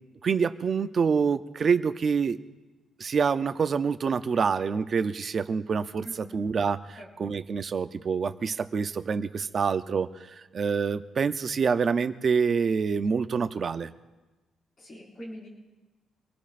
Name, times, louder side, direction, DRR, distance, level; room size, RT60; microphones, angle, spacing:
voice 1, 0.2-2.4 3.0-10.1 10.5-13.9, right 5 dB, 30° right, 11 dB, 0.5 m, -26 dB
voice 2, 6.0-6.4 7.0-7.3 14.8-15.5, equal, 35° left, -4 dB, 5.3 m, -44 dB
25.5 x 19.0 x 2.5 m, 1.1 s
cardioid pair, 180°, 0 cm